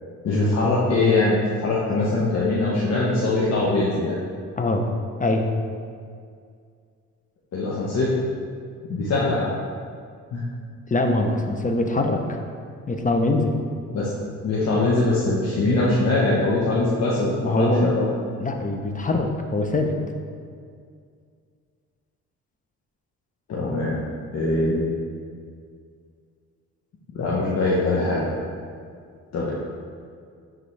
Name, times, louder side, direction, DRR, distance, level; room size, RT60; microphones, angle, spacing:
voice 1, 0.2-4.2 7.5-8.1 8.9-9.5 10.3-10.4 13.9-14.1 14.4-18.1 23.5-24.0 24.3-24.9 27.1-28.2 29.3-29.5, left 2 dB, 60° left, -6 dB, 1.1 m, -22 dB
voice 2, 4.6-4.9 5.2-5.5 10.9-12.4 12.9-13.6 17.4-18.0 18.4-19.9, left 2 dB, 25° left, 4 dB, 0.7 m, -23 dB
10.5 x 3.8 x 3.3 m, 2.2 s
cardioid pair, 90°, 30 cm